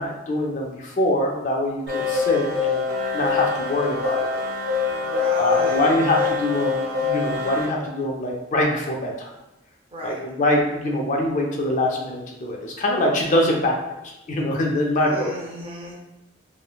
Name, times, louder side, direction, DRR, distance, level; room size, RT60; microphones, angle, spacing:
voice 1, 0.0-2.9 3.1-4.8 5.4-9.1 10.0-15.3, left 1 dB, 45° left, 0 dB, 0.4 m, -24 dB
sound 1, 1.9-7.7, left 5 dB, 55° right, 0.9 m, -24 dB
voice 2, 4.8-6.4 9.9-10.2 15.0-15.9, right 1 dB, 30° right, -4 dB, 0.7 m, -36 dB
3.0 x 2.1 x 2.3 m, 0.96 s
head